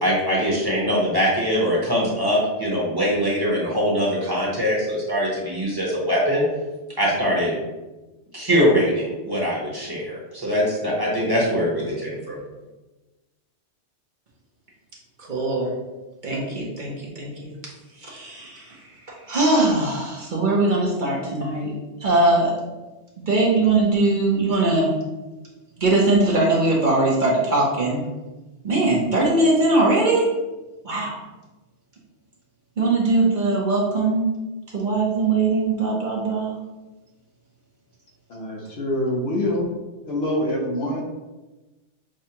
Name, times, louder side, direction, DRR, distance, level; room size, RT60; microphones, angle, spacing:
voice 1, 0.0-6.4 7.0-7.5 8.3-12.4, equal, 20° right, -5 dB, 1.0 m, -22 dB
voice 2, 15.3-15.7 16.2-17.5 18.0-18.8 19.1-21.7 22.0-22.5 23.3-24.9 25.8-28.0 28.6-30.3 30.8-31.2 32.8-34.3 34.7-36.5, right 2 dB, 45° right, -4 dB, 0.9 m, -21 dB
voice 3, 38.3-39.7 40.0-41.0, left 1 dB, 65° left, -1 dB, 1.0 m, -25 dB
6.2 x 2.3 x 2.8 m, 1.1 s
omnidirectional pair, 1.2 m